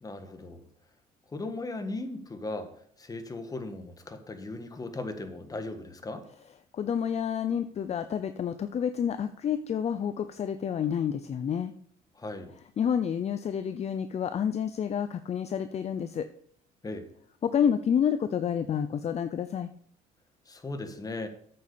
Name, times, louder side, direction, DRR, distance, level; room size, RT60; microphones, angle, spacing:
voice 1, 0.0-0.6 1.3-2.7 3.0-6.3 12.1-12.5 16.8-17.1 20.5-21.3, left 2 dB, 20° left, 7 dB, 1.6 m, -37 dB
voice 2, 6.7-11.7 12.8-16.3 17.4-19.7, left 8 dB, 40° left, 11 dB, 0.6 m, -29 dB
8.6 x 6.9 x 6.9 m, 0.63 s
cardioid pair, 110°, 17 cm